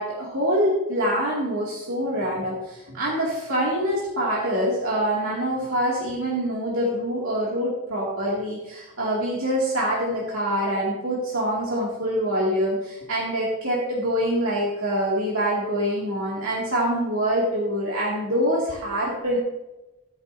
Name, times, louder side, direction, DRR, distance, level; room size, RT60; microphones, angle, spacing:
voice 1, 0.0-19.4, equal, 70° right, -5 dB, 2.4 m, -25 dB
13.0 x 9.8 x 2.7 m, 1.0 s
head